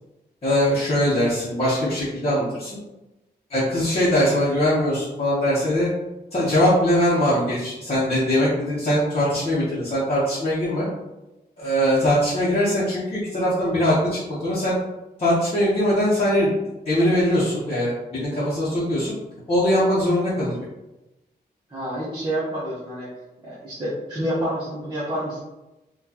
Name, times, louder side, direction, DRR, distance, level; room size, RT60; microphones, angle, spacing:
voice 1, 0.4-2.8 3.5-5.9 6.3-10.9 11.6-14.7 15.2-16.5 16.8-19.1 19.5-20.6, equal, 35° left, -10 dB, 0.8 m, -21 dB
voice 2, 21.7-23.1 23.4-25.4, right 1 dB, 25° right, -9 dB, 0.8 m, -28 dB
4.2 x 2.3 x 2.8 m, 1.0 s
wide cardioid pair, 180°, 17 cm